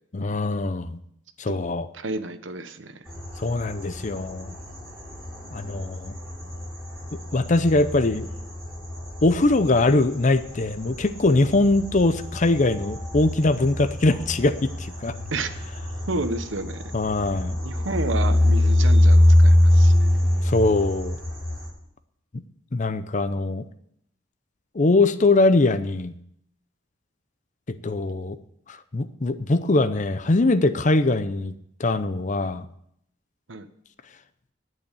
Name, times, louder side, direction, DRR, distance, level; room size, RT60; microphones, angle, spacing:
voice 1, 0.1-1.0 1.4-1.9 3.4-4.6 5.5-6.1 7.1-8.3 9.2-15.1 16.9-17.6 20.4-21.2 22.7-23.6 24.7-26.1 27.7-28.4 28.7-31.5 31.8-32.7, left 2 dB, 40° left, 11 dB, 0.6 m, -22 dB
voice 2, 1.9-3.1 15.3-15.5 16.1-16.9 17.6-20.1 33.5-33.7, right 2 dB, 85° right, 10 dB, 1.1 m, -31 dB
sound 1, 3.1-21.7, left 1 dB, 5° left, 6.3 m, -24 dB
9.4 x 8.5 x 8.9 m, 0.72 s
head